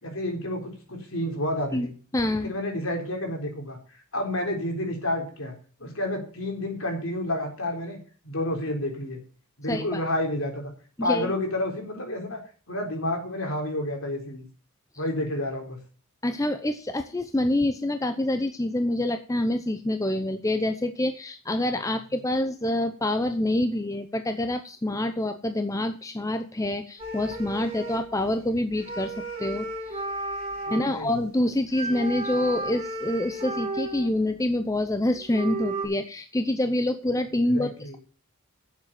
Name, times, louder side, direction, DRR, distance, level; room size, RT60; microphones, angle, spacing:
voice 1, 0.0-1.9 2.4-3.8 4.1-5.5 5.8-8.0 8.2-9.2 9.6-10.7 11.0-12.4 12.7-14.4 15.0-15.8 30.7-31.2 37.5-38.0, left 1 dB, 65° left, 2 dB, 4.0 m, -30 dB
voice 2, 1.7-2.5 9.7-10.0 11.0-11.3 16.2-30.0 30.7-38.0, left 1 dB, 15° left, 8 dB, 0.6 m, -27 dB
sound 1, 27.0-28.3 28.8-30.9 31.7-34.2 34.9-35.0 35.2-35.9, right 2 dB, 25° right, 4.0 m, -33 dB
9.1 x 7.5 x 7.6 m, 0.38 s
head